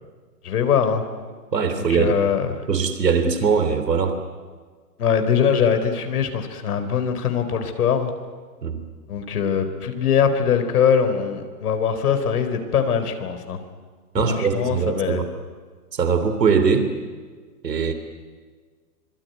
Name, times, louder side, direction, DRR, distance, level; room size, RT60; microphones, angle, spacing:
voice 1, 0.4-1.0 1.8-2.5 5.0-8.1 9.1-13.6 14.1-15.2, left 7 dB, 65° left, 8 dB, 4.2 m, -22 dB
voice 2, 1.5-2.1 2.7-4.2 8.6-8.8 14.1-15.4 15.9-16.9 17.6-17.9, right 6 dB, 90° right, 8 dB, 3.4 m, -21 dB
25.0 x 23.0 x 9.5 m, 1.5 s
hypercardioid pair, 135°, 48 cm